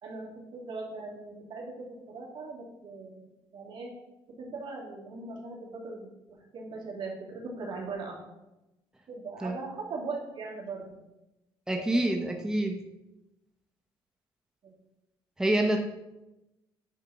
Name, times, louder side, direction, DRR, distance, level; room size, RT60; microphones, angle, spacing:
voice 1, 0.0-3.9 4.4-8.1 9.1-11.1 11.7-12.1 14.6-14.7, right 3 dB, 55° right, -2 dB, 2.9 m, -40 dB
voice 2, 11.7-12.8 15.4-15.8, right 1 dB, 5° right, 3 dB, 0.8 m, -26 dB
10.0 x 4.4 x 5.8 m, 0.98 s
cardioid pair, 100°, 10 cm